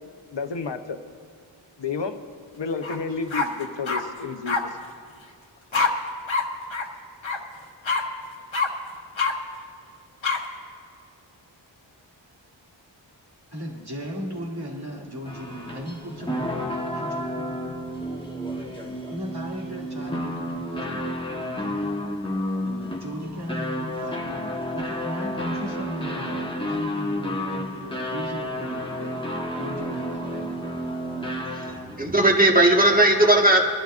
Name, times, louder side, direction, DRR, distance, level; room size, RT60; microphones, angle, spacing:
voice 1, 0.3-1.0 1.8-2.2 2.5-4.6, left 4 dB, 65° left, 7 dB, 1.0 m, -30 dB
sound 1, 2.8-3.0 3.3-4.0 4.5-4.6 5.7-5.9 6.3-6.4 6.7-6.8 7.2-7.4 7.8-8.0 8.5-8.7 9.2-9.3 10.2-10.4, left 4 dB, 90° left, 1.3 m, -24 dB
voice 2, 13.5-17.7 18.5-21.1 21.5-21.9 22.6-29.1 29.6-30.8, equal, 55° right, -3 dB, 2.6 m, -36 dB
sound 2, 15.3-32.0, equal, 10° left, 1.2 m, -31 dB
voice 3, 31.7-33.6, right 1 dB, 20° right, 0 dB, 1.6 m, -17 dB
24.0 x 12.0 x 2.5 m, 2.2 s
wide cardioid pair, 50°, 46 cm